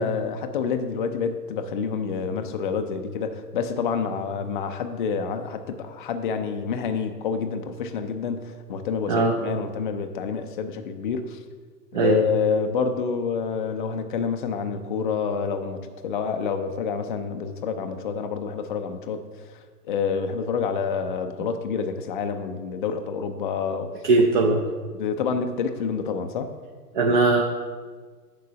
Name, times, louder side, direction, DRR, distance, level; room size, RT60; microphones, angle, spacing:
voice 1, 0.0-11.4 11.9-19.2 19.9-23.9 24.2-24.3 24.9-26.5, left 6 dB, 35° left, 7 dB, 0.4 m, -28 dB
voice 2, 24.0-24.6 26.9-27.4, right 3 dB, 30° right, 0 dB, 0.5 m, -19 dB
6.9 x 4.5 x 6.7 m, 1.5 s
hypercardioid pair, 125°, 50 cm